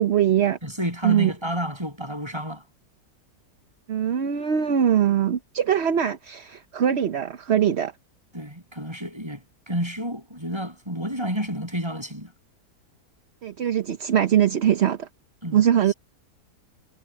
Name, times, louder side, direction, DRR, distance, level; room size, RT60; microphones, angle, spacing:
voice 1, 0.0-0.6 1.0-1.3 3.9-7.9 13.4-15.1 15.5-15.9, right 9 dB, 50° right, 0.9 m, -22 dB
voice 2, 0.6-2.6 8.3-12.3 15.4-15.6, equal, 15° right, 8.1 m, -30 dB
omnidirectional pair, 1.8 m